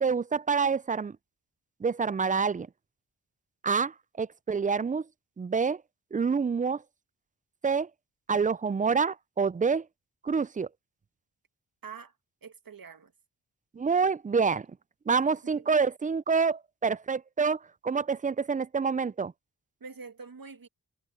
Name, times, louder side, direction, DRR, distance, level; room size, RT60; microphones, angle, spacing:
voice 1, 0.0-1.2 1.8-2.7 3.6-5.0 5.4-5.8 6.1-6.8 7.6-7.9 8.3-9.9 10.2-10.7 13.7-14.7 15.1-19.3, right 5 dB, 20° right, 0.4 m, -27 dB
voice 2, 11.8-12.1 12.4-13.1 15.5-15.7 19.8-20.7, right 5 dB, 50° right, 1.8 m, -45 dB
cardioid pair, 50°, 44 cm